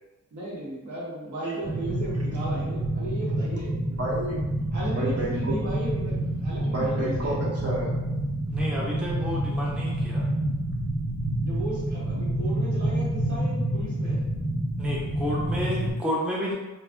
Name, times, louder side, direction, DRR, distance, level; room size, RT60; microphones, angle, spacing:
voice 1, 0.3-3.7 4.7-7.4 11.4-14.2, right 1 dB, 70° right, -7 dB, 1.2 m, -35 dB
sound 1, 1.6-15.9, right 1 dB, 20° right, 1.0 m, -28 dB
voice 2, 4.0-4.4 4.9-5.5 6.5-7.9, right 1 dB, 55° right, -5 dB, 1.0 m, -30 dB
voice 3, 8.5-10.3 14.8-16.5, equal, 5° right, -5 dB, 0.5 m, -31 dB
2.4 x 2.3 x 3.6 m, 1.1 s
wide cardioid pair, 130°, 29 cm